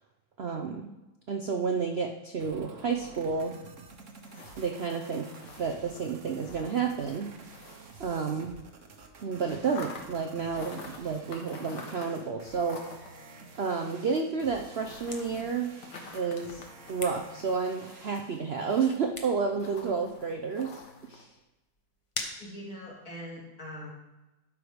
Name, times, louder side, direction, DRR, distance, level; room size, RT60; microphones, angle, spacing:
voice 1, 0.4-0.9 1.3-3.6 4.6-5.3 5.6-7.3 8.0-8.5 9.2-12.8 13.5-15.7 16.1-16.6 16.9-20.7 21.1-21.3, right 5 dB, 80° right, 3 dB, 0.5 m, -30 dB
sound 1, 2.4-18.4, right 4 dB, 50° right, 1.2 m, -50 dB
sound 2, 2.7-8.7 8.9-21.2, left 3 dB, 65° left, 1.8 m, -49 dB
sound 3, 14.6-23.3, left 2 dB, 25° left, 0.6 m, -46 dB
voice 2, 22.4-23.9, equal, 50° left, -4 dB, 3.0 m, -42 dB
12.0 x 4.7 x 5.0 m, 1.0 s
omnidirectional pair, 2.0 m